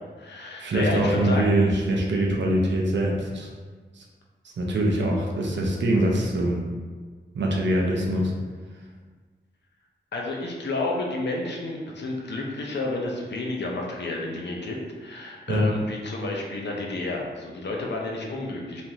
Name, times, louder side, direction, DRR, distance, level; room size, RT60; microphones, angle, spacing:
voice 1, 0.0-1.5 10.1-18.8, left 2 dB, 70° left, -1 dB, 0.5 m, -31 dB
voice 2, 0.6-3.5 4.0-4.1 4.4-6.6 7.3-8.3 15.5-15.7, right 1 dB, 80° right, -1 dB, 0.5 m, -23 dB
3.0 x 2.4 x 2.7 m, 1.5 s
wide cardioid pair, 85°, 19 cm